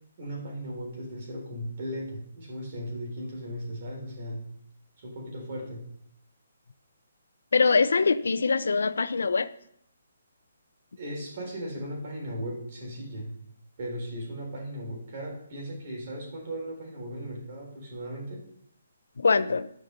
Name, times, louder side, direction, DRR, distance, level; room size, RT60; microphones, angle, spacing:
voice 1, 0.2-4.4 5.0-5.8 11.0-13.3 13.8-18.4, equal, 35° right, -1 dB, 3.9 m, -37 dB
voice 2, 7.5-9.5 19.2-19.7, left 4 dB, 80° left, 13 dB, 0.6 m, -23 dB
12.0 x 6.0 x 6.7 m, 0.72 s
hypercardioid pair, 175°, 0 cm